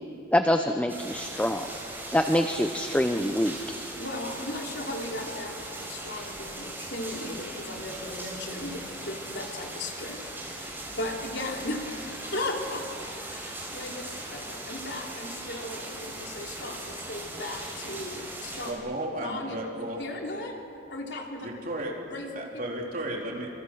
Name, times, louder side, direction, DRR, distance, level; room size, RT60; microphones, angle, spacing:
voice 1, 0.3-1.7 2.1-3.6, left 1 dB, 10° left, 6 dB, 0.7 m, -25 dB
sound 1, 0.9-18.7, right 1 dB, 10° right, 4.7 m, -39 dB
voice 2, 3.9-18.7 19.2-20.6 20.9-21.5 22.1-22.4, left 2 dB, 70° left, 0 dB, 3.5 m, -37 dB
voice 3, 18.7-20.0 21.4-21.9 22.4-23.5, right 1 dB, 50° right, -1 dB, 3.8 m, -34 dB
27.0 x 26.0 x 6.3 m, 2.6 s
head